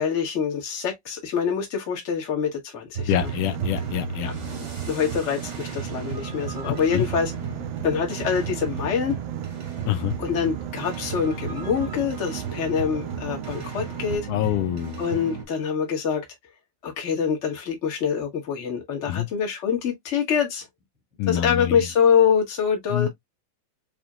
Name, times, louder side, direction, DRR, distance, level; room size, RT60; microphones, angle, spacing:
voice 1, 0.0-3.3 4.2-4.3 4.9-7.3 7.8-9.2 10.2-14.3 15.0-16.2 16.8-20.7 21.3-23.1, left 7 dB, 55° left, 0.7 m, -25 dB
sound 1, 2.9-15.4, right 5 dB, 45° right, 0.9 m, -34 dB
voice 2, 3.1-4.3 6.6-7.1 9.9-10.2 14.3-15.0 19.1-19.3 21.2-21.8 22.9-23.1, left 13 dB, 80° left, 1.9 m, -26 dB
Boat Water vehicle, 3.2-14.2, right 11 dB, 80° right, 2.4 m, -36 dB
7.0 x 2.9 x 2.4 m
omnidirectional pair, 4.2 m